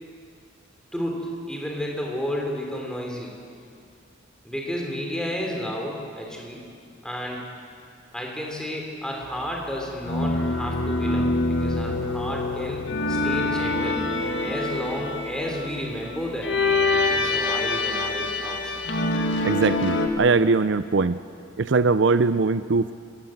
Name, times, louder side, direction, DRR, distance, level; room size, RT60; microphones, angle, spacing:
voice 1, 0.9-3.3 4.4-6.6 7.0-7.5 8.1-16.6 16.9-18.8, equal, 5° left, 0 dB, 3.8 m, -32 dB
sound 1, 10.0-20.1, left 2 dB, 65° left, 2.0 m, -25 dB
voice 2, 19.4-21.2 21.6-22.9, right 4 dB, 65° right, 13 dB, 0.5 m, -21 dB
27.0 x 16.5 x 8.0 m, 2.3 s
head